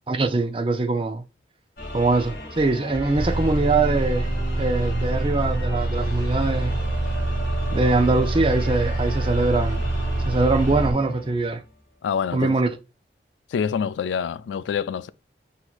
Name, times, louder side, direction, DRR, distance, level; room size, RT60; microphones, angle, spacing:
voice 1, 0.1-1.2 1.9-4.3 4.6-6.8 7.7-9.9 10.2-11.6 12.3-12.7, right 3 dB, 30° right, 0.5 m, -22 dB
sound 1, 1.8-11.7, left 1 dB, 50° left, 1.9 m, -35 dB
sound 2, 3.1-10.9, right 2 dB, 75° right, 0.7 m, -25 dB
voice 2, 12.0-12.6 13.5-15.1, left 7 dB, 90° left, 0.3 m, -26 dB
6.1 x 2.8 x 2.3 m
head